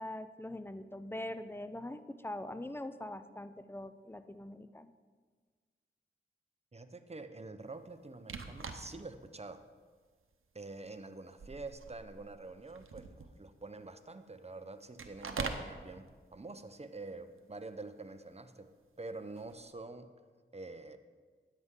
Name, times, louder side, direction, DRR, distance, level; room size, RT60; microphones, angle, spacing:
voice 1, 0.0-4.9, left 1 dB, 10° left, 11 dB, 0.6 m, -43 dB
voice 2, 6.7-9.6 10.5-18.7 19.0-20.1 20.5-21.0, right 3 dB, 30° right, 9 dB, 0.8 m, -47 dB
sound 1, 8.2-9.1 9.6-9.7 10.6-10.9 11.2-13.5 15.0-15.7 19.4-19.7, right 4 dB, 90° right, 0.8 m, -43 dB
13.5 x 9.6 x 3.8 m, 1.5 s
cardioid pair, 45°, 21 cm